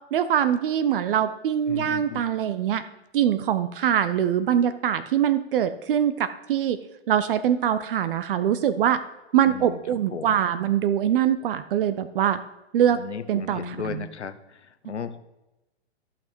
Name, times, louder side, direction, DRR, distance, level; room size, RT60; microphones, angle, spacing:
voice 1, 0.1-2.8 3.1-6.8 7.1-9.0 9.3-12.4 12.7-13.0 13.3-14.1, right 10 dB, 55° right, 13 dB, 0.7 m, -23 dB
voice 2, 1.7-2.3 9.5-9.8 10.1-10.4 12.9-15.2, left 6 dB, 85° left, 11 dB, 1.0 m, -35 dB
14.5 x 5.9 x 4.5 m, 0.99 s
hypercardioid pair, 120°, 34 cm